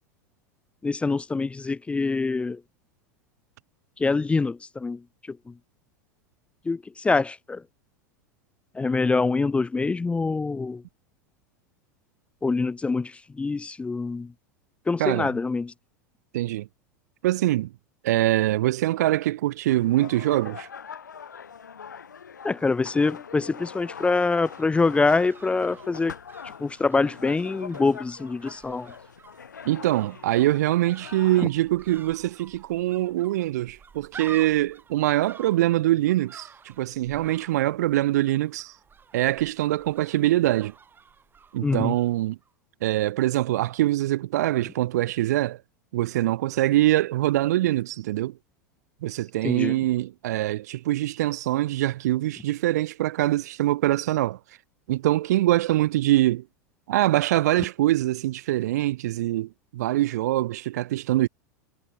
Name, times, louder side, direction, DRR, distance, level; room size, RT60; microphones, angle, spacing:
voice 1, 0.8-2.6 4.0-5.0 5.3-5.5 6.7-7.6 8.7-10.8 12.4-14.3 14.9-15.7 22.4-26.1 26.6-28.9 41.6-42.0 49.4-49.8, left 3 dB, 10° left, 0.6 m, -25 dB
voice 2, 15.0-15.3 16.3-16.7 17.2-17.7 18.0-20.7 29.6-36.5 36.8-38.7 39.1-40.7 41.5-42.4 42.8-45.6 45.9-48.3 49.0-54.4 54.9-56.4 56.9-61.3, right 15 dB, 65° right, 0.9 m, -23 dB
sound 1, 19.7-31.5, left 7 dB, 80° left, 2.4 m, -43 dB
sound 2, 24.2-42.2 42.4-42.5, right 6 dB, 20° right, 3.1 m, -50 dB
figure-of-eight pair, 90°, 10 cm